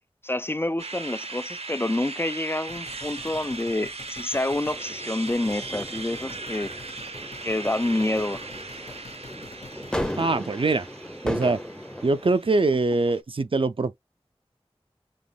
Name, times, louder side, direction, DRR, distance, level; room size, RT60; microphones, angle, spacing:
voice 1, 0.2-6.7 7.4-8.4, left 1 dB, 20° left, 0.3 m, -28 dB
sound 1, 0.8-13.2, right 3 dB, 80° right, 0.8 m, -39 dB
sound 2, 2.7-4.8 5.3-10.2, left 3 dB, 80° left, 1.0 m, -47 dB
sound 3, 4.7-12.4, equal, 5° left, 0.7 m, -36 dB
voice 2, 10.2-10.9 11.2-11.6 12.0-14.0, right 3 dB, 55° right, 0.4 m, -23 dB
5.3 x 2.9 x 2.3 m
wide cardioid pair, 50°, 10 cm